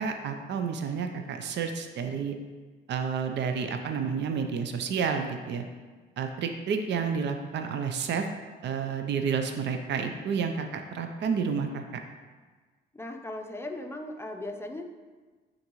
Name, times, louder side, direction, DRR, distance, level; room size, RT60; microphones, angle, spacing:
voice 1, 0.0-2.4 2.9-5.6 6.2-8.3 8.6-11.8, right 6 dB, 60° right, 6 dB, 0.6 m, -30 dB
voice 2, 12.9-14.8, left 1 dB, 10° left, 4 dB, 0.6 m, -37 dB
9.1 x 3.9 x 3.0 m, 1.4 s
cardioid pair, 90°, 20 cm